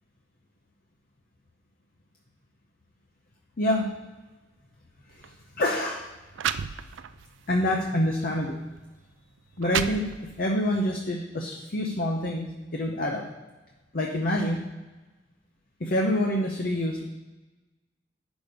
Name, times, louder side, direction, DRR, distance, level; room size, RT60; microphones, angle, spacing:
voice 1, 3.6-3.9 5.1-6.1 7.5-8.6 9.6-13.2 13.9-14.6 15.8-17.0, left 1 dB, 50° left, 1 dB, 0.8 m, -27 dB
sound 1, 5.1-5.3 6.0-6.1 6.3-7.3 7.8-8.0 8.8-8.9 9.4-10.5, right 8 dB, 85° right, 0.4 m, -31 dB
8.6 x 6.2 x 5.1 m, 1.2 s
head